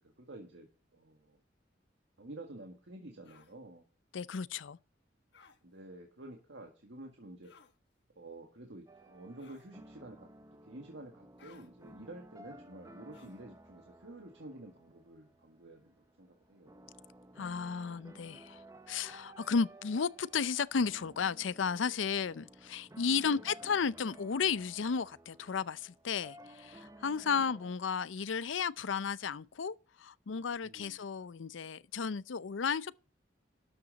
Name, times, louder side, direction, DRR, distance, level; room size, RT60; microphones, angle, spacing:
voice 1, 0.2-0.7 0.9-1.4 2.2-3.9 5.6-7.5 8.2-10.3 10.7-16.9 23.3-23.5 27.2-27.5 30.6-31.0, right 1 dB, 70° right, 1.8 m, -50 dB
sound 1, 3.2-3.5 5.3-5.6 7.4-7.8 9.4-9.7 11.4-11.7 13.1-13.4, left 5 dB, 60° left, 1.4 m, -60 dB
voice 2, 4.1-4.8 17.4-18.6 18.9-33.0, left 6 dB, 85° left, 0.5 m, -34 dB
sound 2, 8.9-27.8, right 1 dB, 15° right, 0.9 m, -56 dB
13.0 x 8.7 x 4.0 m
head